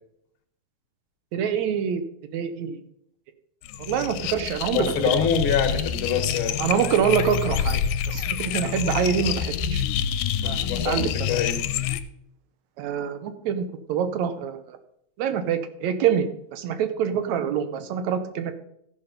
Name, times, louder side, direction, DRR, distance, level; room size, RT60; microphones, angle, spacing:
voice 1, 1.3-2.0 2.3-2.8 3.9-4.9 6.6-7.8 8.1-9.8 10.4-11.1 12.8-14.8 15.2-18.5, right 8 dB, 75° right, 9 dB, 2.1 m, -25 dB
sound 1, 3.6-12.0, left 9 dB, 90° left, 2.0 m, -27 dB
voice 2, 4.7-6.6 10.4-11.6, left 7 dB, 55° left, 6 dB, 1.7 m, -25 dB
14.0 x 5.7 x 5.1 m, 0.73 s
omnidirectional pair, 3.3 m